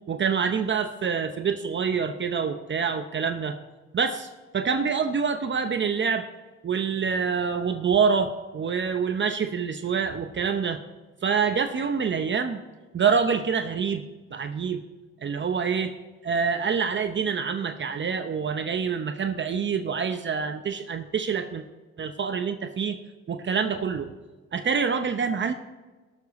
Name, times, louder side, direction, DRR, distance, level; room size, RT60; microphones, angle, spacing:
voice 1, 0.1-3.6 3.9-4.2 4.5-6.3 6.6-10.8 11.2-12.6 12.9-14.0 14.3-14.8 15.2-15.9 16.2-21.6 22.0-23.0 23.3-24.1 24.5-25.5, right 6 dB, 40° right, 7 dB, 0.7 m, -26 dB
18.0 x 7.0 x 4.1 m, 1.3 s
cardioid pair, 90°, 30 cm